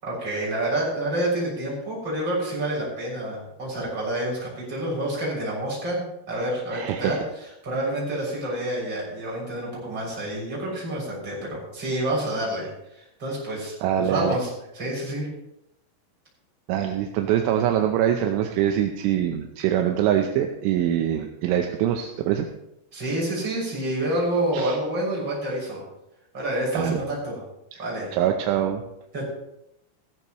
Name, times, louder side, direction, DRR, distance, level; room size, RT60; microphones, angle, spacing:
voice 1, 0.0-7.2 7.6-15.3 22.9-25.8 26.3-27.4 27.8-28.1 29.1-29.2, right 1 dB, 20° right, -5 dB, 6.9 m, -28 dB
voice 2, 6.7-7.2 13.8-14.4 16.7-22.5 24.5-24.8 26.7-27.0 27.7-27.8 28.1-28.8, right 10 dB, 80° right, 4 dB, 3.2 m, -24 dB
16.5 x 15.0 x 3.1 m, 0.83 s
omnidirectional pair, 5.7 m